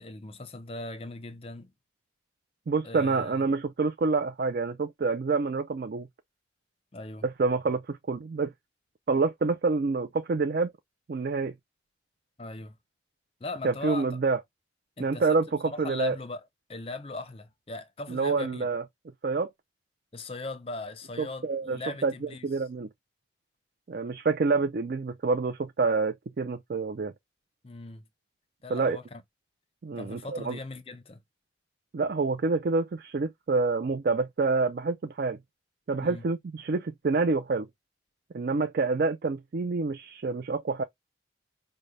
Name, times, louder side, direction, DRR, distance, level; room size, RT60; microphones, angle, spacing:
voice 1, 0.0-1.7 2.8-3.3 6.9-7.3 12.4-12.8 13.4-14.2 15.0-15.4 15.6-16.4 16.7-18.7 20.1-22.5 27.6-28.0 28.6-29.2 30.0-31.2 36.0-36.2, left 2 dB, 30° left, 0.6 m, -39 dB
voice 2, 2.7-6.1 7.2-8.5 9.1-10.7 11.1-11.5 13.6-14.4 15.0-16.2 18.1-18.8 19.2-19.5 21.2-22.1 22.4-22.9 23.9-27.1 28.7-29.0 29.8-30.6 31.9-35.4 35.9-37.7 38.3-40.8, right 4 dB, 55° right, 0.4 m, -27 dB
5.2 x 2.1 x 3.2 m
head